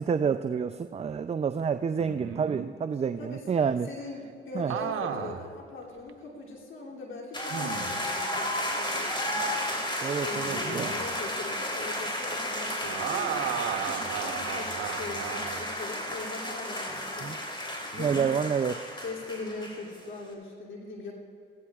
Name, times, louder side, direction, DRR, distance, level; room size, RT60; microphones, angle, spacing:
voice 1, 0.0-3.9 4.5-4.7 10.0-10.9 17.2-17.4 18.0-18.9, right 6 dB, 30° right, 10 dB, 0.4 m, -28 dB
sound 1, 2.0-2.7 4.7-5.5 6.1-6.2 7.5-8.1 10.4-11.1 12.8-15.7 17.9-18.3, right 8 dB, 80° right, 0.8 m, -35 dB
voice 2, 3.8-9.8 10.1-13.4 13.9-17.4 17.8-18.5 19.0-21.1, left 3 dB, 70° left, -3 dB, 2.8 m, -41 dB
sound 2, 7.3-20.0, left 1 dB, 25° left, 3.2 m, -33 dB
17.0 x 16.0 x 2.4 m, 2.7 s
supercardioid pair, 60°, 21 cm